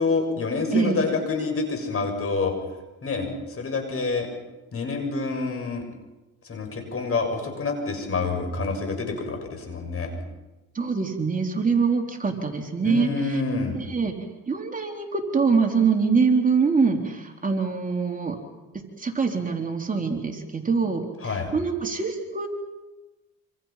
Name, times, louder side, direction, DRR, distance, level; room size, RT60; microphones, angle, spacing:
voice 1, 0.0-2.5 3.0-4.3 4.7-5.9 6.5-10.1 12.8-13.8 21.2-21.5, left 4 dB, 50° left, 5 dB, 6.9 m, -27 dB
voice 2, 10.7-13.4 13.7-14.1 14.5-18.4 19.0-22.5, right 5 dB, 25° right, 2 dB, 3.8 m, -24 dB
27.0 x 27.0 x 5.9 m, 1.1 s
cardioid pair, 90°, 30 cm